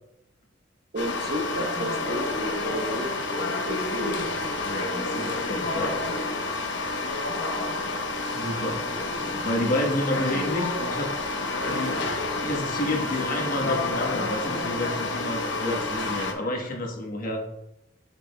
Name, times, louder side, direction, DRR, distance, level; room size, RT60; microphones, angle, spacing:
voice 1, 0.9-3.2 3.6-4.3 7.9-8.0 15.6-15.8 16.2-16.3, right 1 dB, 55° right, 4 dB, 0.9 m, -33 dB
sound 1, 1.0-16.3, left 2 dB, 65° left, 0.8 m, -29 dB
voice 2, 4.7-6.0 8.3-11.1 11.6-12.1 12.4-17.4, left 1 dB, 50° left, 1 dB, 1.1 m, -30 dB
6.9 x 6.2 x 2.2 m, 0.86 s
head